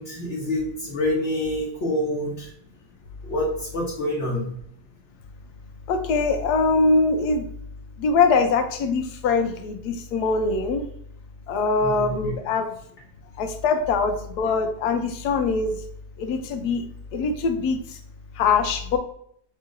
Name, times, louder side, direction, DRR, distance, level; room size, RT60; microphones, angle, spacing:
voice 1, 0.0-2.5 3.2-4.5 11.8-12.3, left 1 dB, 50° left, -5 dB, 1.0 m, -27 dB
voice 2, 5.9-7.5 8.0-10.9 11.5-12.7 13.4-15.8 16.2-16.8 17.1-18.0 18.4-19.0, left 4 dB, 85° left, 7 dB, 1.1 m, -22 dB
5.5 x 2.7 x 2.5 m, 0.68 s
omnidirectional pair, 1.7 m